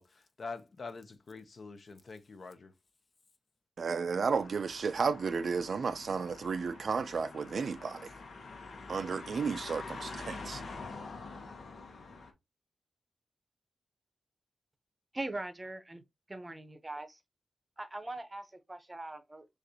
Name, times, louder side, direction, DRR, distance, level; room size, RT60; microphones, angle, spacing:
voice 1, 0.0-2.7, left 4 dB, 50° left, 0.7 m, -45 dB
voice 2, 3.8-8.1 8.9-10.6, right 5 dB, 65° right, 0.4 m, -33 dB
sound 1, 4.3-12.3, left 3 dB, 85° left, 1.0 m, -46 dB
voice 3, 15.1-16.0 16.3-17.2 17.8-19.5, right 2 dB, 20° right, 0.7 m, -41 dB
6.5 x 2.5 x 2.8 m
wide cardioid pair, 120°, 0 cm